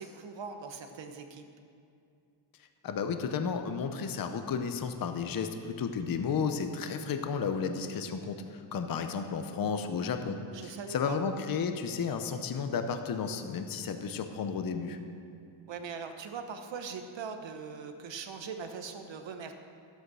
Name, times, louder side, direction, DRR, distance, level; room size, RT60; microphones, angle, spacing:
voice 1, 0.0-1.4 10.5-11.2 15.7-19.5, right 5 dB, 60° right, 6 dB, 1.1 m, -41 dB
voice 2, 2.8-15.0, left 6 dB, 45° left, 7 dB, 0.7 m, -33 dB
12.0 x 8.1 x 6.2 m, 2.4 s
wide cardioid pair, 160°, 50 cm